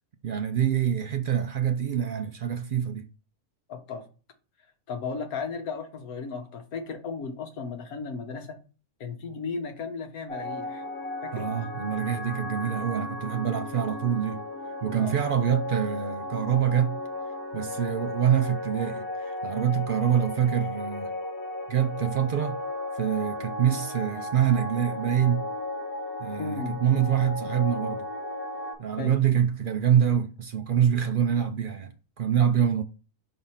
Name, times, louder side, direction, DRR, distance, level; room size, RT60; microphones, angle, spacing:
voice 1, 0.2-3.0 11.3-14.4 14.8-17.0 17.5-21.1 21.7-22.6 22.9-25.5 26.2-28.1 28.8-32.8, right 9 dB, 75° right, 0.4 m, -25 dB
voice 2, 3.7-4.1 4.9-8.6 9.0-10.8 11.2-11.5 15.0-15.2 26.4-26.8 29.0-29.1, left 5 dB, 75° left, 1.5 m, -35 dB
sound 1, 10.3-28.7, left 2 dB, 10° left, 3.7 m, -35 dB
5.0 x 4.0 x 5.6 m
omnidirectional pair, 1.5 m